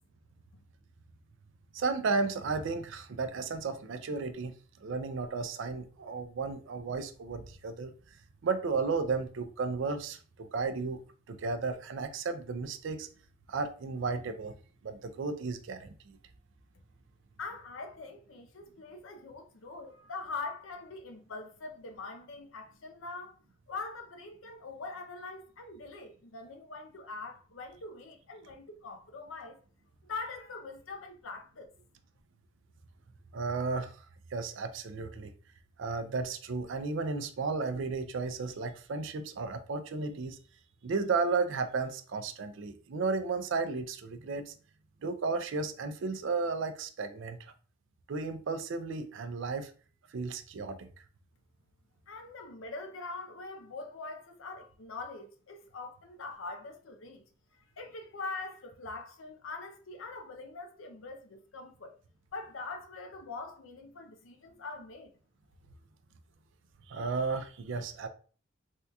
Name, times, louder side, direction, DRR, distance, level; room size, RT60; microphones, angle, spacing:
voice 1, 1.7-4.5 4.8-7.9 8.4-11.0 11.3-13.1 13.5-14.5 14.8-16.2 33.3-34.0 34.3-35.3 35.8-40.4 40.8-44.5 45.0-47.5 48.1-49.7 50.1-50.9 66.9-68.1, right 4 dB, 65° right, 0.4 m, -33 dB
voice 2, 17.4-23.4 23.7-29.6 30.0-31.7 52.1-57.2 57.5-62.0 62.3-65.1, left 3 dB, 75° left, 0.6 m, -43 dB
3.5 x 2.3 x 2.7 m
head